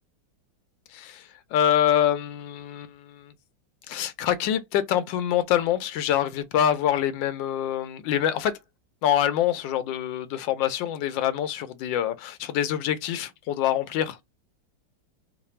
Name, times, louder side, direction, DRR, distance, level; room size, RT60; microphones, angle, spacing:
voice 1, 0.9-3.3 3.9-8.6 9.0-14.2, left 10 dB, 85° left, 1.3 m, -25 dB
3.2 x 2.2 x 4.2 m
omnidirectional pair, 2.0 m